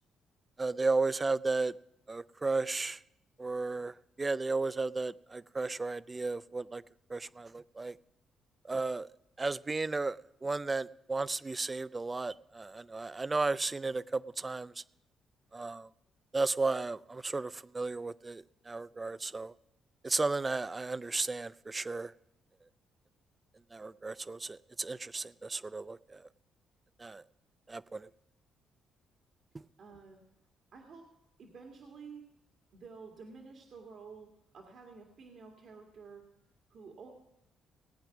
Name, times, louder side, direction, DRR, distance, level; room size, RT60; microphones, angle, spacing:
voice 1, 0.6-1.7 2.1-3.0 3.4-6.8 7.1-8.0 8.7-9.1 9.4-14.8 15.5-15.9 16.3-19.5 20.0-22.1 23.7-26.2 27.0-27.2 27.7-28.1 29.5-29.6, right 3 dB, 25° right, 0.4 m, -34 dB
voice 2, 29.8-30.2 30.7-31.1 31.4-32.2 32.7-36.3 36.7-37.1, right 5 dB, 60° right, 1.9 m, -51 dB
18.0 x 8.8 x 5.9 m
cardioid pair, 90°, 0 cm